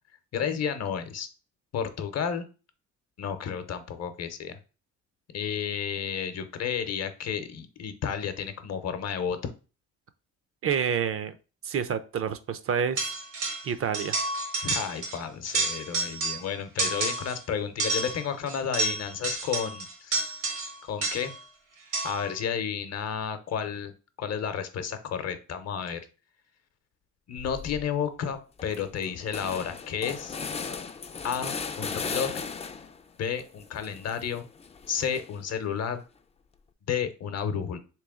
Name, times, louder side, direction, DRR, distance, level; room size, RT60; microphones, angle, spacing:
voice 1, 0.3-1.3 1.7-2.4 3.2-4.6 5.3-9.5 14.6-20.3 20.8-21.3 22.0-23.9 24.2-26.1 27.3-30.4 31.2-32.5 33.2-34.5 34.9-36.0 36.9-37.8, left 7 dB, 60° left, 10 dB, 0.7 m, -32 dB
voice 2, 10.6-11.3 11.6-13.1 13.6-14.2, right 7 dB, 50° right, 11 dB, 0.5 m, -28 dB
sound 1, 13.0-13.7 13.9-15.2 15.5-16.5 16.8-17.4 17.8-21.4 21.9-22.3, right 3 dB, 80° right, 1.3 m, -30 dB
sound 2, 27.4-27.8 28.3-28.4 28.6-33.0 33.4-35.5, left 5 dB, 20° left, 0.3 m, -37 dB
3.3 x 3.1 x 3.6 m, 0.34 s
cardioid pair, 90°, 30 cm